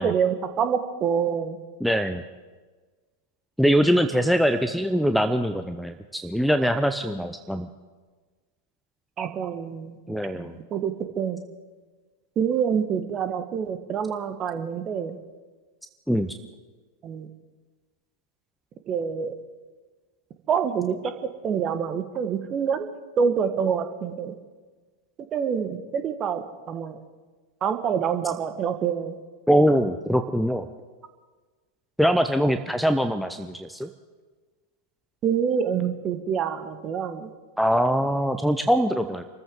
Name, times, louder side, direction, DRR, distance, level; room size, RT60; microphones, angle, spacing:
voice 1, 0.0-1.6 9.2-10.0 10.3-11.4 12.3-15.2 17.0-17.3 18.9-19.3 20.5-21.1 21.4-22.9 23.2-24.3 25.3-27.0 27.6-29.1 35.2-37.3, right 7 dB, 30° right, 9 dB, 1.5 m, -26 dB
voice 2, 1.8-2.2 3.6-7.7 10.1-10.6 16.1-16.3 29.5-30.7 32.0-33.9 37.6-39.2, equal, ahead, 8 dB, 0.7 m, -22 dB
27.0 x 14.0 x 3.8 m, 1.4 s
figure-of-eight pair, 90°, 0 cm